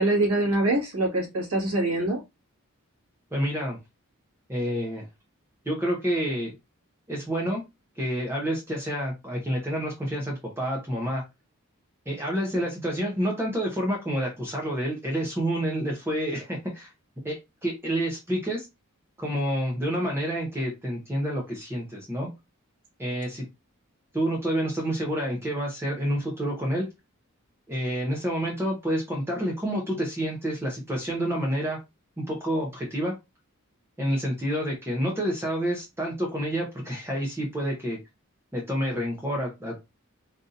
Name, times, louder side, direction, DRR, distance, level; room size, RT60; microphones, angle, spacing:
voice 1, 0.0-2.2, right 2 dB, 90° right, -2 dB, 1.8 m, -24 dB
voice 2, 3.3-3.8 4.5-5.1 5.7-6.5 7.1-7.6 8.0-11.2 12.1-16.9 17.2-18.7 19.2-22.3 23.0-23.5 24.1-26.9 27.7-31.8 32.2-33.2 34.0-38.0 38.5-39.8, equal, 10° right, -1 dB, 0.7 m, -28 dB
3.9 x 2.6 x 2.5 m, 0.22 s
head